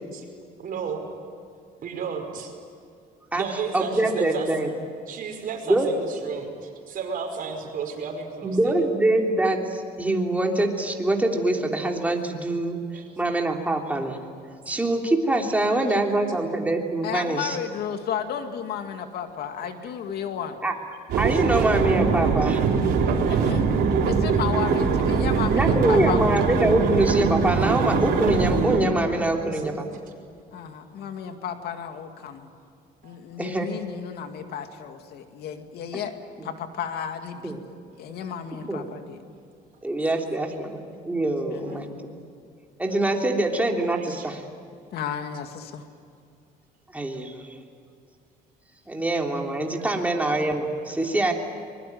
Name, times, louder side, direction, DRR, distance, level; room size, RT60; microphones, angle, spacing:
voice 1, 0.6-1.1 1.8-2.5 3.3-4.5 5.1-8.8 12.9-13.1 15.7-16.0 29.3-29.9 33.0-33.2 41.7-41.8 43.9-44.3 49.6-49.8, right 6 dB, 55° right, 4 dB, 5.3 m, -34 dB
voice 2, 3.7-4.7 5.7-5.9 8.4-12.8 13.2-14.2 14.7-17.6 20.6-20.7 21.2-22.6 25.5-29.7 33.4-33.7 37.4-37.6 38.7-38.8 39.8-41.9 42.8-44.4 46.9-47.4 48.9-51.3, right 2 dB, 10° right, 1 dB, 3.2 m, -24 dB
voice 3, 17.0-20.6 23.3-23.7 24.0-26.4 30.5-32.5 33.0-36.1 36.4-37.5 38.0-39.2 41.5-42.3 44.9-45.9, left 8 dB, 70° left, 6 dB, 2.3 m, -33 dB
sound 1, 21.1-28.8, right 5 dB, 75° right, 3.9 m, -22 dB
24.5 x 21.5 x 9.4 m, 2.3 s
cardioid pair, 110°, 17 cm